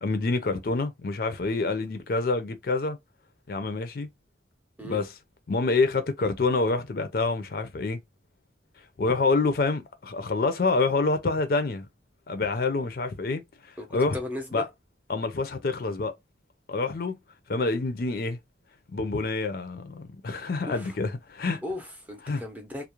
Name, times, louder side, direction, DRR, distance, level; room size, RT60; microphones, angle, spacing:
voice 1, 0.0-3.0 3.5-4.1 4.8-5.1 5.5-8.0 9.0-11.9 12.3-13.4 13.7-14.2 14.5-14.7 15.1-16.1 16.7-17.2 17.5-18.4 18.9-21.6 22.3-22.4, left 3 dB, 55° left, 0.4 m, -27 dB
voice 2, 13.8-14.7 20.7-20.9 21.6-22.9, left 1 dB, 10° right, 0.5 m, -36 dB
2.4 x 2.0 x 2.9 m
head